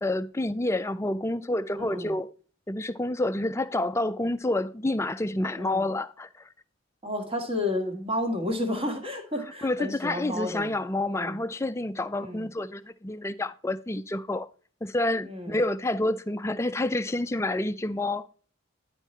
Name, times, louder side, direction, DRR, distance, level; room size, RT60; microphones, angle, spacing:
voice 1, 0.0-2.3 2.7-6.5 9.6-14.5 14.8-18.3, left 2 dB, 15° left, 0.3 m, -28 dB
voice 2, 1.8-2.1 5.6-5.8 7.0-10.7 11.1-11.4 12.2-12.5 15.2-15.5, left 1 dB, 25° right, 1.5 m, -31 dB
11.0 x 4.6 x 4.3 m
head